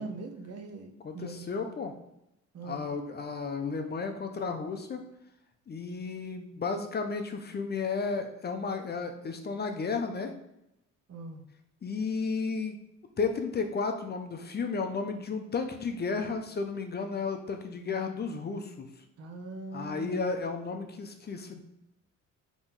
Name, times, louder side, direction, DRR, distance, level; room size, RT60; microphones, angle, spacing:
voice 1, 0.0-1.7 2.5-2.9 11.1-11.4 19.2-20.3, right 3 dB, 55° right, 4 dB, 0.8 m, -41 dB
voice 2, 1.0-1.9 2.6-5.0 5.7-10.3 11.8-12.8 13.2-18.9 19.7-21.6, left 4 dB, 35° left, 5 dB, 0.6 m, -33 dB
4.0 x 3.0 x 3.7 m, 0.83 s
cardioid pair, 90°, 30 cm